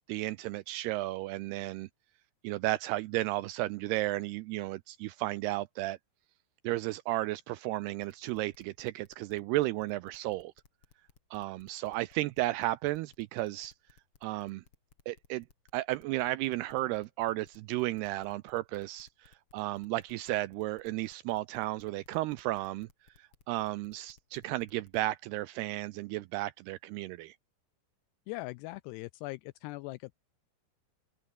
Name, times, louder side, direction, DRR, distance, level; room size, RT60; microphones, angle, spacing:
voice 1, 0.1-1.9 2.4-6.0 6.6-10.5 11.3-13.7 14.2-14.6 15.1-15.5 15.7-22.9 23.2-27.4, right 17 dB, 85° right, 2.4 m, -33 dB
sound 1, 8.0-25.0, left 6 dB, 35° left, 2.8 m, -63 dB
voice 2, 28.3-30.2, left 21 dB, 85° left, 2.4 m, -40 dB
open air
omnidirectional pair, 5.2 m